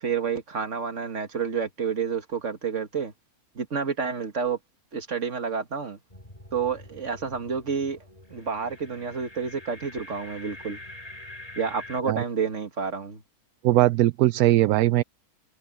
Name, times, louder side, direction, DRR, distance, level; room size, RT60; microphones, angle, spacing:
voice 1, 0.0-3.1 3.6-4.6 4.9-6.0 6.5-8.0 8.3-10.8 11.6-13.2, right 6 dB, 50° right, 2.2 m, -29 dB
sound 1, 6.1-12.0, left 1 dB, 25° left, 5.5 m, -45 dB
voice 2, 13.6-15.0, right 15 dB, 75° right, 1.0 m, -20 dB
omnidirectional pair, 1.6 m